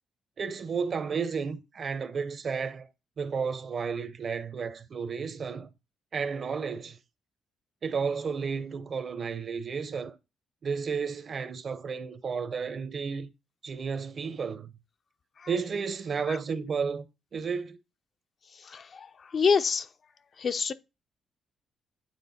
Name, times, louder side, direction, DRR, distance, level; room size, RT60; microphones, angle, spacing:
voice 1, 0.4-2.9 3.2-5.7 6.1-7.0 7.8-10.2 10.6-13.3 13.6-14.7 15.5-17.1 17.3-17.8, right 5 dB, 45° right, 0.7 m, -32 dB
voice 2, 18.6-19.9 20.4-20.7, left 5 dB, 45° left, 0.5 m, -27 dB
8.9 x 3.4 x 4.2 m
cardioid pair, 90°, 0 cm